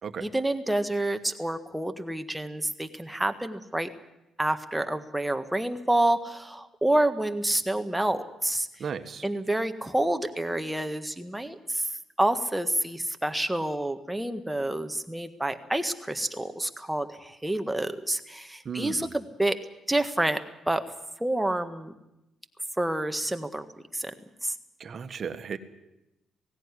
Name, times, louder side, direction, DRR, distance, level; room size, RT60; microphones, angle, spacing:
voice 1, 0.2-3.9 4.4-8.7 9.2-11.9 12.2-19.6 19.9-20.4 20.7-20.8 21.2-21.9 22.8-23.6 23.9-24.1 24.4-24.5, right 1 dB, 5° right, 8 dB, 1.6 m, -28 dB
voice 2, 8.8-9.2 18.6-19.1 24.8-25.6, right 6 dB, 50° right, 9 dB, 1.5 m, -35 dB
17.5 x 16.5 x 9.9 m, 0.92 s
cardioid pair, 90°, 0 cm